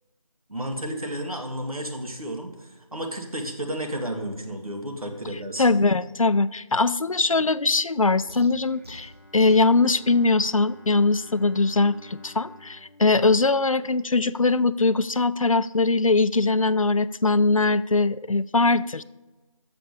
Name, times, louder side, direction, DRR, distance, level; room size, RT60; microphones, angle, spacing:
voice 1, 0.5-5.9, right 1 dB, 80° right, 3 dB, 2.0 m, -32 dB
voice 2, 5.6-19.0, left 3 dB, 70° left, 16 dB, 0.4 m, -21 dB
sound 1, 8.3-9.7, right 1 dB, 45° right, 1.0 m, -45 dB
Bowed string instrument, 8.6-14.6, left 1 dB, 35° left, 0.7 m, -51 dB
7.0 x 6.7 x 6.6 m, 1.1 s
figure-of-eight pair, 170°, 18 cm